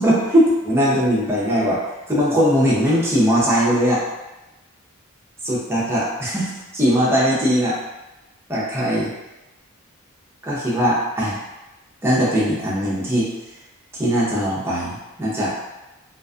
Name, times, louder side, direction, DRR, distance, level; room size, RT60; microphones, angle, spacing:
voice 1, 0.0-1.8 2.1-4.0 5.4-7.8 8.5-9.1 10.4-11.4 12.0-13.3 13.9-15.5, equal, 10° right, -7 dB, 0.6 m, -20 dB
2.5 x 2.2 x 2.4 m, 1.0 s
head